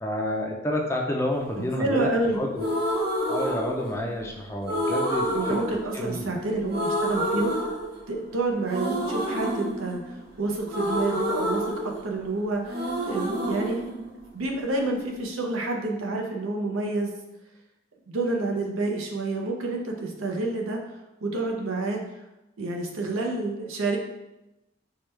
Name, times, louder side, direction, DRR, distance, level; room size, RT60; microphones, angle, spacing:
voice 1, 0.0-2.1 2.3-2.6 3.3-5.4 5.7-6.4, left 1 dB, 15° left, 0 dB, 0.4 m, -29 dB
voice 2, 1.6-2.4 5.3-7.5 8.1-11.7 12.0-13.8 14.3-17.1 18.1-20.8 21.2-22.0 22.6-24.0, right 2 dB, 85° right, 1 dB, 0.7 m, -28 dB
sound 1, 2.5-4.2 4.7-6.4 6.7-8.3 8.7-12.4 12.6-14.7, equal, 50° right, 0.9 m, -29 dB
4.6 x 2.2 x 3.2 m, 0.95 s
head